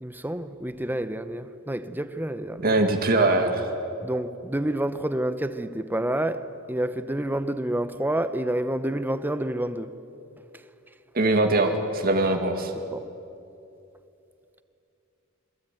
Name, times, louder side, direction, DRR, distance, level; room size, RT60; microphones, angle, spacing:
voice 1, 0.0-2.7 4.0-9.9 12.9-13.1, right 1 dB, 10° right, 0.9 m, -28 dB
voice 2, 2.6-3.7 11.1-12.7, right 2 dB, 45° right, 2.1 m, -22 dB
26.5 x 22.0 x 9.3 m
head